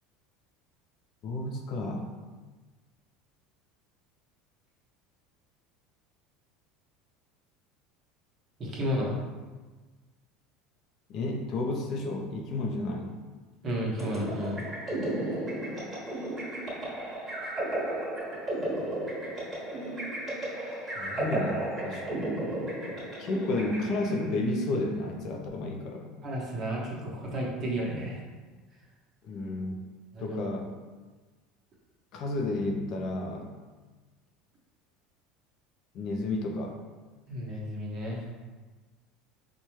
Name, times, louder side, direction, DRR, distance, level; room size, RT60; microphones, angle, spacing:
voice 1, 1.2-2.1 11.1-13.2 21.0-22.3 23.2-26.1 29.2-29.9 30.2-30.7 32.1-33.6 35.9-36.8, left 2 dB, 50° left, 2 dB, 0.5 m, -32 dB
voice 2, 8.6-9.2 13.6-14.6 26.2-28.2 30.1-30.4 37.3-38.3, equal, 30° right, -4 dB, 1.0 m, -32 dB
sound 1, 14.0-24.4, right 1 dB, 15° right, 1.2 m, -34 dB
4.2 x 2.2 x 3.1 m, 1.3 s
supercardioid pair, 130°, 0 cm